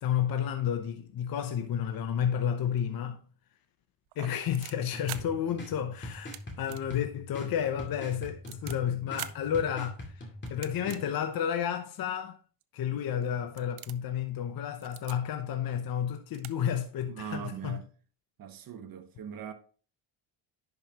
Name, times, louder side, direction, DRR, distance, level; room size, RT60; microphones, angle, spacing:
voice 1, 0.0-3.2 4.2-12.4 12.7-17.8, left 9 dB, 45° left, 0.9 m, -31 dB
sound 1, 4.1-5.2 6.1-6.4 6.7-6.8 7.2-7.3 7.9-8.8 9.2-9.3 10.5-11.0 11.6-11.7 12.6-12.7 13.1-13.3 13.6-14.1 14.8-15.2 16.0-16.1 16.3-16.5 16.8-16.9, right 16 dB, 75° right, 0.7 m, -43 dB
sound 2, 4.9-11.0, left 1 dB, 20° left, 2.4 m, -43 dB
voice 2, 17.1-17.9 18.4-19.5, right 8 dB, 45° right, 1.2 m, -40 dB
10.5 x 5.3 x 2.9 m
cardioid pair, 100°, 49 cm